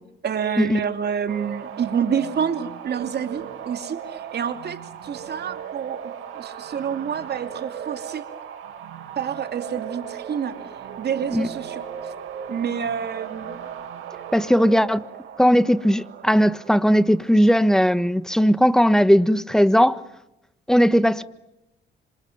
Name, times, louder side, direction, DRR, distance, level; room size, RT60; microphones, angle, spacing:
voice 1, 0.2-6.0 6.3-8.2 9.2-10.6 11.0-11.8 12.5-13.6, right 7 dB, 55° right, 2.7 m, -28 dB
sound 1, 1.3-18.0, right 8 dB, 90° right, 4.8 m, -37 dB
voice 2, 14.3-15.0 15.4-20.0 20.7-21.2, equal, 5° left, 1.4 m, -18 dB
27.0 x 26.5 x 8.0 m
cardioid pair, 90°, 20 cm